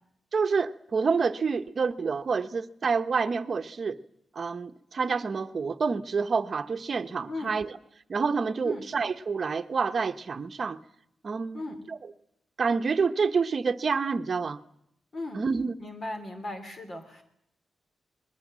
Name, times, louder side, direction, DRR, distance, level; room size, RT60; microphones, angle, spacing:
voice 1, 0.3-4.0 4.3-7.7 8.1-10.8 11.2-11.6 11.9-12.0 12.6-14.6 15.3-15.7, right 5 dB, 40° right, 9 dB, 1.1 m, -28 dB
voice 2, 7.3-7.6 8.6-8.8 11.5-11.8 15.1-15.4 15.8-17.2, left 2 dB, 40° left, 6 dB, 2.8 m, -37 dB
27.0 x 21.0 x 7.6 m, 0.76 s
wide cardioid pair, 140°, 0 cm